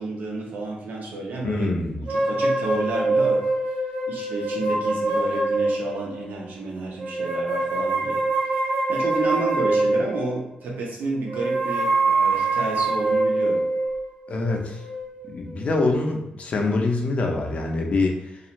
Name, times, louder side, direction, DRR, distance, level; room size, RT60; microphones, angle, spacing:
voice 1, 0.0-3.5 4.1-8.6 8.9-13.6, right 3 dB, 90° right, -1 dB, 0.7 m, -31 dB
voice 2, 1.4-2.0 14.3-14.8 15.3-18.2, left 3 dB, 50° left, 2 dB, 0.5 m, -24 dB
sound 1, 2.1-6.2 7.0-10.4 11.3-15.6, right 2 dB, 75° right, 1.1 m, -24 dB
2.4 x 2.4 x 2.9 m, 0.86 s
wide cardioid pair, 165°, 3 cm